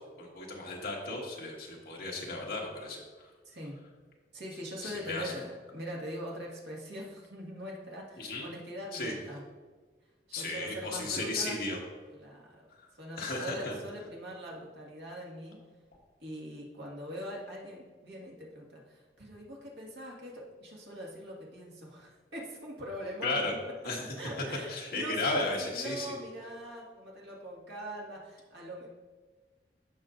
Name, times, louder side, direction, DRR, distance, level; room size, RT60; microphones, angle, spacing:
voice 1, 0.2-3.3 4.8-5.3 8.2-8.5 8.9-9.1 10.3-11.8 13.2-13.7 23.2-23.5 23.8-24.2 24.7-26.1, left 2 dB, 55° left, -3 dB, 1.8 m, -34 dB
voice 2, 3.4-3.8 4.3-9.4 10.3-11.6 12.1-12.7 12.9-15.6 16.2-23.6 24.2-28.9, equal, 85° right, -3 dB, 1.9 m, -42 dB
15.0 x 5.5 x 2.6 m, 1.4 s
head